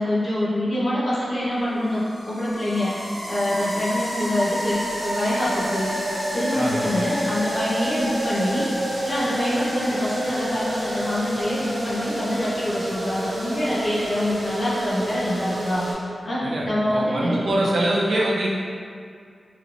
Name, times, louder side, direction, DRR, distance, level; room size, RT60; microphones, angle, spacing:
voice 1, 0.0-6.0 6.3-15.9 16.2-17.4, left 1 dB, 40° left, -8 dB, 0.8 m, -25 dB
sound 1, 1.3-15.9, equal, 30° right, 0.8 m, -29 dB
voice 2, 6.6-6.9 16.4-18.5, right 1 dB, 85° right, -5 dB, 0.5 m, -24 dB
3.1 x 3.0 x 2.5 m, 2.2 s
wide cardioid pair, 155°, 0 cm